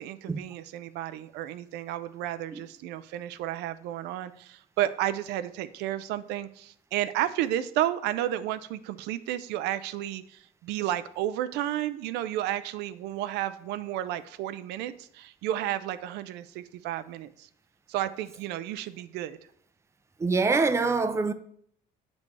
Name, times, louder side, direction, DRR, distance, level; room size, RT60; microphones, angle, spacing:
voice 1, 0.0-17.5 17.9-19.4, right 13 dB, 90° right, 0.4 m, -32 dB
voice 2, 20.2-21.3, right 4 dB, 15° right, 0.5 m, -24 dB
8.1 x 5.2 x 3.2 m
cardioid pair, 110°, 17 cm